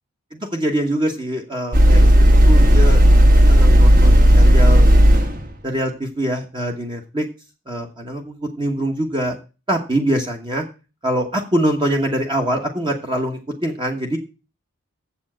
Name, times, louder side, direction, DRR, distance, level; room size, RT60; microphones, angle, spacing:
voice 1, 0.3-3.0 3.5-4.9 5.6-7.3 7.7-9.4 9.7-10.6 11.0-14.2, right 1 dB, 20° right, 2 dB, 1.2 m, -24 dB
sound 1, 1.7-5.5, equal, 40° right, 1.4 m, -11 dB
7.6 x 7.1 x 7.4 m, 0.33 s
head